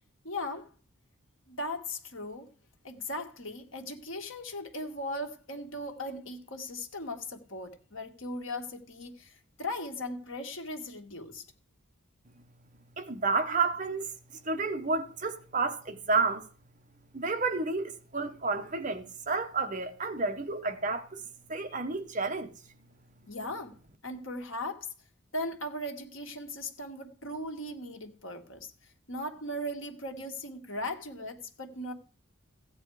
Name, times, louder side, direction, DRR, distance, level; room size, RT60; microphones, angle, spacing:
voice 1, 0.2-0.7 1.5-2.5 2.8-11.5 23.3-24.9 25.3-28.7 29.1-31.9, left 1 dB, 70° left, 1.9 m, -38 dB
voice 2, 13.0-14.1 14.4-16.5 17.1-22.5, right 3 dB, 35° right, 1.1 m, -31 dB
15.5 x 9.0 x 4.8 m
head